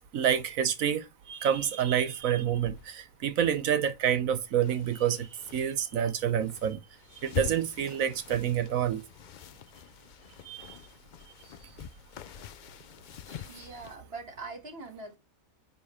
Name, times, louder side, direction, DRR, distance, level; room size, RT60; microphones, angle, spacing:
voice 1, 0.0-6.8 7.2-9.0 10.4-10.8, right 9 dB, 85° right, 1.3 m, -28 dB
sound 1, 2.6-14.0, left 10 dB, 85° left, 0.4 m, -44 dB
voice 2, 13.5-15.2, right 3 dB, 45° right, 1.9 m, -42 dB
9.8 x 3.5 x 4.3 m
omnidirectional pair, 1.4 m